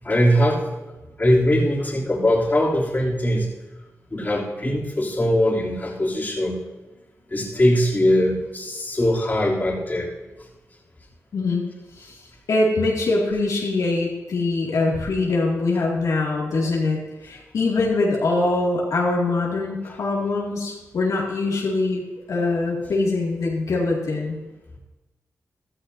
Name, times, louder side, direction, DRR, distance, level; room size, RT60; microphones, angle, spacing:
voice 1, 0.0-0.7 1.2-3.5 4.1-6.6 7.3-10.1, equal, 35° left, -5 dB, 2.9 m, -21 dB
voice 2, 11.3-11.7 12.5-22.0 22.3-24.4, left 3 dB, 85° left, -4 dB, 2.2 m, -23 dB
14.0 x 13.0 x 2.7 m, 1.1 s
cardioid pair, 70°, 6 cm